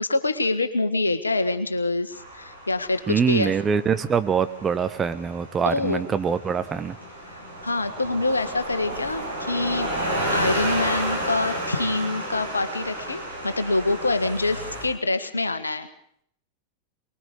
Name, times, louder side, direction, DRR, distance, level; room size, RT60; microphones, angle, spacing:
voice 1, 0.0-3.5 5.6-6.0 7.2-9.9 10.3-15.9, left 2 dB, 80° left, 10 dB, 1.6 m, -25 dB
sound 1, 2.1-14.8, right 1 dB, 85° right, 6.6 m, -32 dB
voice 2, 3.1-7.0, right 6 dB, 20° right, 10 dB, 1.2 m, -24 dB
24.0 x 21.5 x 5.1 m, 0.65 s
figure-of-eight pair, 90°, 0 cm